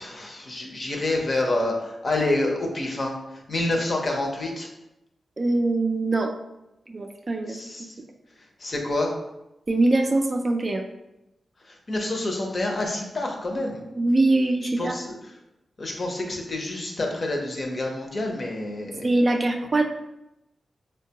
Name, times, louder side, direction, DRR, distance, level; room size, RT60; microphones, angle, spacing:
voice 1, 0.0-4.7 7.5-8.0 8.6-9.1 11.6-13.8 14.8-15.2 15.8-19.1, left 2 dB, 40° left, 0 dB, 0.6 m, -28 dB
voice 2, 5.4-6.3 6.9-7.6 9.7-10.9 14.0-15.0 19.0-19.8, right 2 dB, 35° right, 3 dB, 0.3 m, -22 dB
4.5 x 2.2 x 2.8 m, 0.91 s
wide cardioid pair, 120°, 0 cm